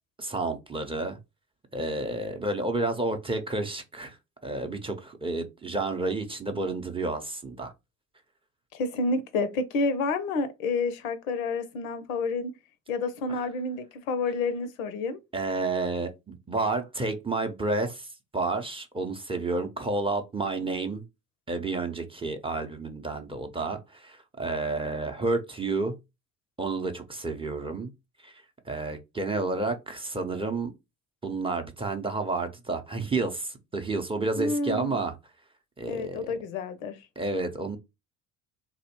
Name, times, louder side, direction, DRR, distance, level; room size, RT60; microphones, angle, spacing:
voice 1, 0.2-1.2 1.7-4.2 4.4-7.7 15.3-18.1 18.3-21.0 21.5-25.9 26.6-27.9 28.2-30.7 31.2-35.1 35.8-36.2 37.2-37.8, right 3 dB, 15° right, 0.5 m, -30 dB
voice 2, 8.7-12.5 12.9-15.2 34.4-35.0 35.9-37.0, left 3 dB, 85° left, 0.5 m, -29 dB
2.7 x 2.0 x 2.8 m
hypercardioid pair, 55°, 39 cm